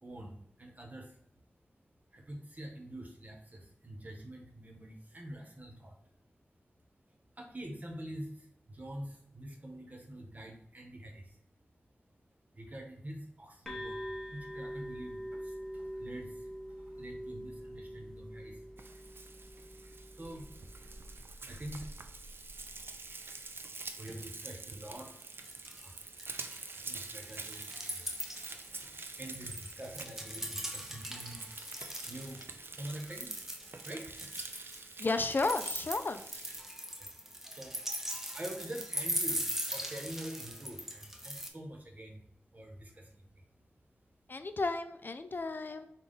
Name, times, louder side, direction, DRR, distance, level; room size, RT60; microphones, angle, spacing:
voice 1, 0.0-1.2 2.1-6.0 7.4-11.4 12.5-16.5 16.8-18.6 19.5-19.6 20.1-20.7 21.5-21.9 23.1-23.2 23.8-25.1 25.8-26.0 26.7-28.1 28.5-28.9 29.2-31.5 32.0-33.3 33.8-34.3 37.0-37.1 37.5-37.8 38.3-42.2 42.5-43.4 45.7-45.8, right 1 dB, 40° right, 1 dB, 1.1 m, -46 dB
sound 1, 13.6-21.1, equal, 10° left, 1.3 m, -44 dB
Frying (food), 18.8-36.6, right 3 dB, 60° right, 0.4 m, -47 dB
sound 2, 23.5-23.6 23.9-24.5 24.8-25.9 26.2-32.5 32.9-41.5, equal, 10° right, 0.6 m, -40 dB
voice 2, 35.0-36.2 44.3-45.9, left 3 dB, 50° left, 10 dB, 0.3 m, -33 dB
5.4 x 2.4 x 3.9 m, 0.73 s
wide cardioid pair, 75°, 4 cm